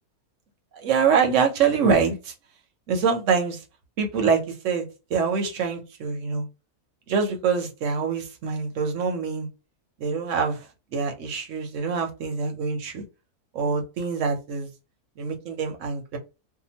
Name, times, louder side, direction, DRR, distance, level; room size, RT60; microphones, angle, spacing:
voice 1, 0.7-2.3 2.9-3.6 4.0-6.5 7.1-9.5 10.0-10.6 10.9-13.0 13.5-14.7 15.2-16.2, right 5 dB, 60° right, 0.9 m, -25 dB
2.8 x 2.2 x 2.8 m
omnidirectional pair, 1.6 m